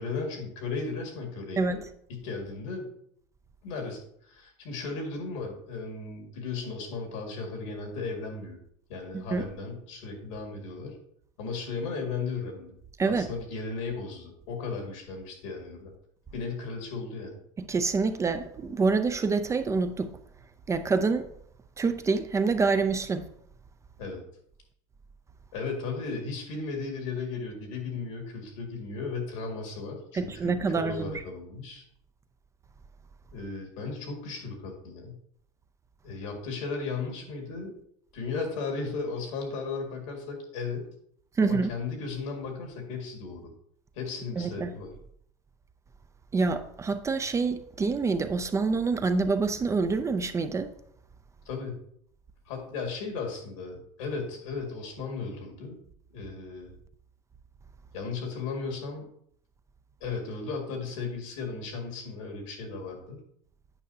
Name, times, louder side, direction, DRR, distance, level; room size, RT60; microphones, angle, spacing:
voice 1, 0.0-1.8 2.1-2.9 3.6-8.6 8.9-11.0 11.4-12.7 13.1-15.9 16.3-17.4 24.0-24.2 25.5-31.8 33.3-35.1 36.0-37.7 38.1-40.9 41.4-43.5 43.9-44.9 51.5-51.8 52.5-55.8 56.1-56.7 57.9-59.1 60.0-63.2, left 4 dB, 85° left, 2.0 m, -35 dB
voice 2, 17.7-20.1 20.7-21.3 21.8-23.2 30.1-31.1 41.4-41.7 44.4-44.7 46.3-50.7, right 4 dB, 20° right, 0.4 m, -26 dB
8.8 x 5.4 x 2.7 m
supercardioid pair, 115°, 16 cm